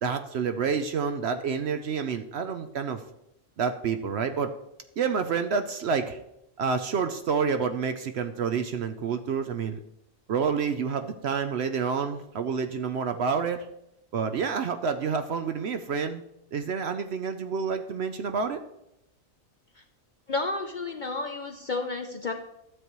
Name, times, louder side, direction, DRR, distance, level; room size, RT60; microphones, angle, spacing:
voice 1, 0.0-3.0 3.6-4.5 5.0-6.2 6.6-9.8 10.3-13.7 14.1-16.2 16.5-18.6, right 6 dB, 60° right, 8 dB, 0.8 m, -28 dB
voice 2, 20.3-22.3, left 3 dB, 50° left, 5 dB, 0.6 m, -31 dB
12.5 x 8.1 x 3.0 m, 0.83 s
omnidirectional pair, 1.4 m